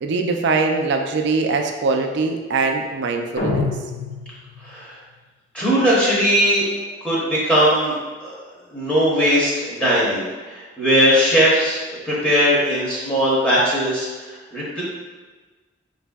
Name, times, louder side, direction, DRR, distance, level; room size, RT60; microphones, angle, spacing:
voice 1, 0.0-3.6, right 4 dB, 65° right, 4 dB, 0.3 m, -22 dB
sound 1, 3.4-4.8, left 3 dB, 30° left, 0.4 m, -26 dB
voice 2, 4.6-5.0 5.5-6.6 7.0-8.3 8.7-11.8 12.1-14.1 14.5-14.8, equal, 5° left, -8 dB, 0.8 m, -19 dB
4.1 x 2.6 x 2.3 m, 1.3 s
head